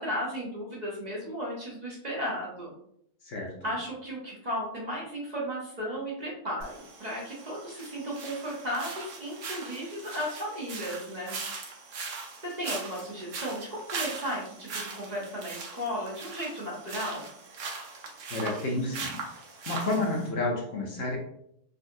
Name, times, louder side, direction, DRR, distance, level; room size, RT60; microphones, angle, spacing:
voice 1, 0.0-2.7 3.6-11.4 12.4-17.3, equal, 40° right, -5 dB, 0.8 m, -35 dB
sound 1, 6.6-20.3, right 4 dB, 75° right, 1.0 m, -40 dB
voice 2, 18.3-19.2 19.7-21.2, left 2 dB, 60° left, 0 dB, 0.8 m, -30 dB
3.6 x 2.4 x 2.6 m, 0.72 s
omnidirectional pair, 1.3 m